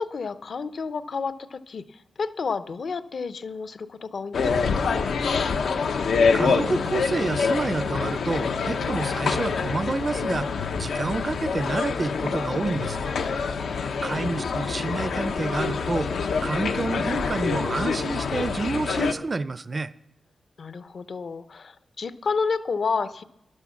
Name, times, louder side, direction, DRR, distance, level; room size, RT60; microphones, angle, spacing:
voice 1, 0.0-4.9 13.6-14.0 20.6-23.2, left 5 dB, 50° left, 14 dB, 0.7 m, -31 dB
sound 1, 4.3-19.1, left 5 dB, 90° left, 0.9 m, -26 dB
voice 2, 6.3-13.1 14.0-19.9, right 3 dB, 30° right, 15 dB, 0.4 m, -29 dB
12.0 x 11.5 x 7.1 m, 0.79 s
wide cardioid pair, 145°, 0 cm